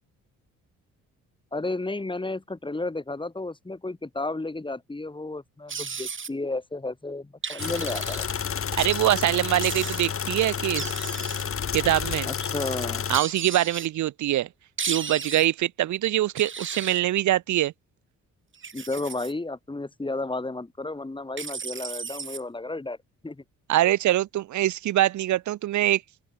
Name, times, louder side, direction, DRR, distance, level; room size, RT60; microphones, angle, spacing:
voice 1, 1.5-8.2 12.3-13.0 18.7-23.0 23.2-23.4, left 2 dB, 15° left, 6.7 m, -32 dB
sound 1, 5.7-6.3 7.4-8.2 9.6-10.0 10.8-11.4 13.1-13.9 14.8-15.5 16.4-17.0 18.5-19.3 21.4-22.4, right 6 dB, 40° right, 6.9 m, -34 dB
sound 2, 7.6-13.2, left 7 dB, 45° left, 3.7 m, -30 dB
voice 2, 8.8-10.9 11.7-12.3 13.1-14.5 14.9-17.7 23.7-26.0, right 14 dB, 70° right, 1.0 m, -23 dB
open air
cardioid pair, 90°, 30 cm